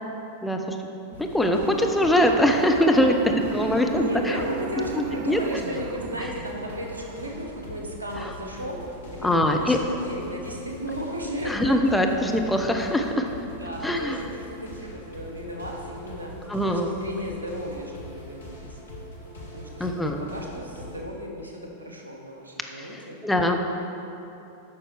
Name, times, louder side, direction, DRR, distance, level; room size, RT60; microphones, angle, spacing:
voice 1, 0.4-0.8 1.2-3.1 3.5-4.4 5.3-5.4 9.2-9.8 11.5-13.3 13.8-14.2 16.5-16.9 19.8-20.3 22.8-22.9 23.2-23.6, left 1 dB, 5° left, 3 dB, 0.7 m, -22 dB
sound 1, 1.1-21.0, equal, 70° left, 1.5 m, -42 dB
sound 2, 1.6-8.0, right 9 dB, 50° right, 0.3 m, -36 dB
voice 2, 3.5-11.6 13.5-18.8 19.5-23.2, equal, 80° right, 0 dB, 1.2 m, -35 dB
9.5 x 6.1 x 4.9 m, 2.9 s
figure-of-eight pair, 90°, 0 cm